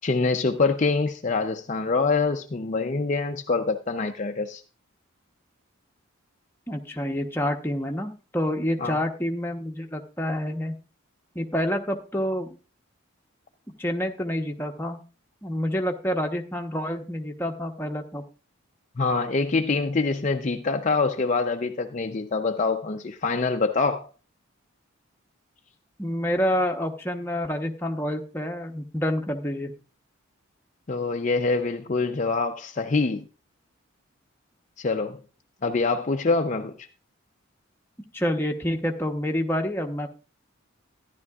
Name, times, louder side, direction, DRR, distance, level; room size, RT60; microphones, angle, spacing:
voice 1, 0.0-4.6 8.8-9.0 19.0-24.1 30.9-33.3 34.8-35.2 35.6-36.9, left 3 dB, 35° left, 0.5 m, -25 dB
voice 2, 6.7-10.7 11.3-12.5 13.8-15.0 15.4-18.2 26.0-29.7 38.1-40.1, equal, 10° left, 0.9 m, -28 dB
14.0 x 10.5 x 2.4 m
head